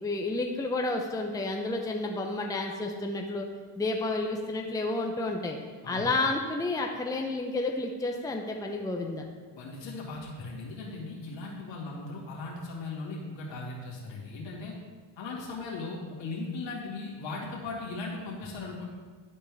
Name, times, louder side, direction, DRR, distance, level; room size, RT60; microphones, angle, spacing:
voice 1, 0.0-3.5 3.8-5.6 5.9-9.2, left 2 dB, 10° left, 2 dB, 0.7 m, -30 dB
voice 2, 9.5-14.7 15.2-18.9, left 3 dB, 65° left, -4 dB, 2.2 m, -38 dB
11.5 x 4.3 x 3.5 m, 1.5 s
cardioid pair, 80°, 48 cm